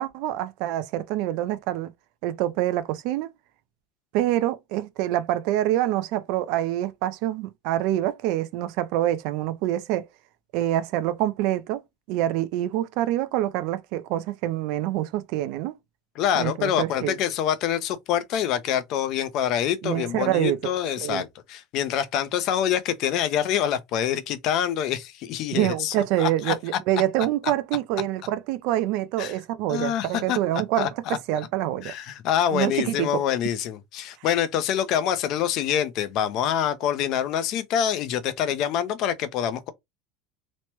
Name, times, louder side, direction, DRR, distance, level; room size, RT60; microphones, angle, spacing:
voice 1, 0.0-1.9 2.2-3.3 4.1-10.1 10.5-11.8 12.1-15.8 16.4-17.2 19.8-20.7 21.0-21.2 25.5-31.9 32.5-33.2, right 13 dB, 65° right, 0.4 m, -26 dB
voice 2, 16.2-26.5 29.2-29.4 29.7-30.4 30.8-31.2 31.8-39.7, left 9 dB, 50° left, 0.5 m, -26 dB
3.0 x 2.1 x 2.9 m
supercardioid pair, 135°, 0 cm